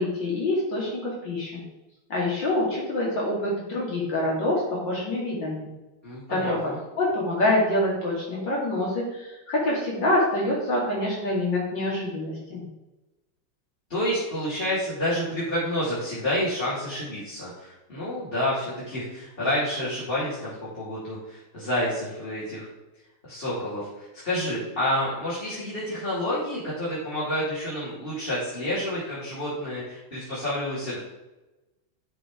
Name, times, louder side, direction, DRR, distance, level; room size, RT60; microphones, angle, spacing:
voice 1, 0.0-1.6 2.1-5.7 6.3-6.6 7.0-12.7, left 1 dB, 60° left, -4 dB, 2.9 m, -26 dB
voice 2, 6.0-6.8 13.9-22.7 23.2-31.0, left 1 dB, 25° left, -10 dB, 3.2 m, -29 dB
12.5 x 4.7 x 4.9 m, 1.0 s
omnidirectional pair, 2.2 m